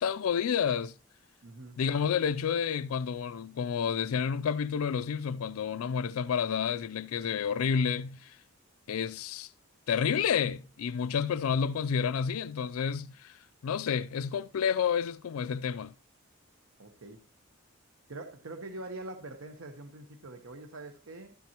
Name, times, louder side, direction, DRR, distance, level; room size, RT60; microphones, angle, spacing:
voice 1, 0.0-0.9 1.8-8.4 8.9-9.5 9.9-13.4 13.6-15.9, left 7 dB, 80° left, 0.4 m, -30 dB
voice 2, 1.4-1.8 16.8-17.2 18.1-21.4, right 2 dB, 70° right, 1.0 m, -44 dB
12.5 x 9.1 x 2.9 m
head